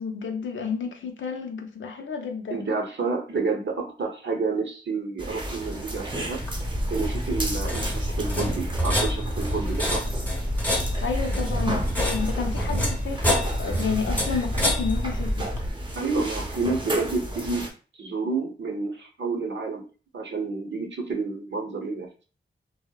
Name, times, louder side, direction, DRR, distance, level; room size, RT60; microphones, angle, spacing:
voice 1, 0.0-2.7 11.0-15.5, left 5 dB, 70° left, 3 dB, 0.6 m, -31 dB
voice 2, 2.5-6.4 6.9-10.0 16.0-17.7 18.0-19.8 20.1-22.2, right 4 dB, 65° right, 1 dB, 0.7 m, -29 dB
sound 1, 5.2-17.7, right 1 dB, 25° right, 0.7 m, -34 dB
sound 2, 6.4-15.7, equal, 10° left, 0.8 m, -27 dB
2.7 x 2.0 x 2.2 m, 0.37 s
cardioid pair, 50°, 21 cm